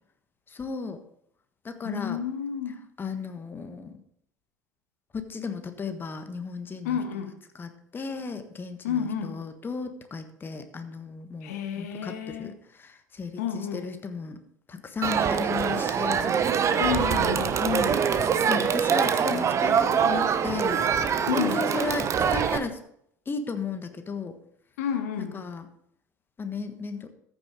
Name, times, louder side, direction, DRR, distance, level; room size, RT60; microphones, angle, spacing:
voice 1, 0.5-1.0 1.6-2.2 3.0-4.0 5.1-7.0 7.5-14.4 14.7-16.3 17.6-20.8 21.3-22.8 23.3-24.4 25.3-25.7 26.4-27.1, left 5 dB, 25° left, 8 dB, 1.4 m, -35 dB
voice 2, 1.8-2.8 6.8-7.4 8.8-9.4 11.4-12.5 13.4-13.8 16.8-17.6 21.2-21.6 24.8-25.3, left 8 dB, 65° left, 7 dB, 1.4 m, -30 dB
Crowd, 15.0-22.6, right 7 dB, 35° right, 0.9 m, -24 dB
14.0 x 6.5 x 4.9 m, 0.69 s
figure-of-eight pair, 70°, 9 cm